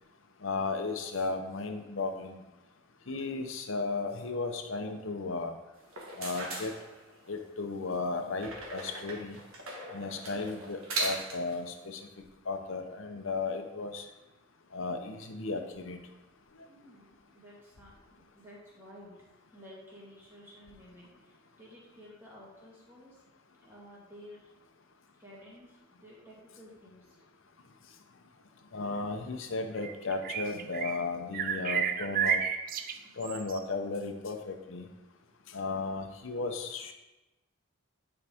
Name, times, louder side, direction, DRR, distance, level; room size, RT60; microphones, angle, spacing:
voice 1, 0.4-2.4 3.1-5.5 6.2-6.7 7.3-9.4 9.9-12.0 12.5-14.0 14.7-16.0 28.7-32.4 33.2-34.8 35.5-36.9, left 3 dB, 65° left, 6 dB, 0.8 m, -35 dB
sound 1, 5.8-7.4 8.4-11.5, right 2 dB, 75° right, 1.5 m, -38 dB
voice 2, 16.7-19.2 19.5-23.2 23.6-24.5 25.2-27.2, equal, 10° right, -6 dB, 2.0 m, -53 dB
sound 2, 29.8-31.1 31.3-33.6, right 8 dB, 40° right, 0.3 m, -32 dB
9.4 x 4.8 x 3.6 m, 1.0 s
head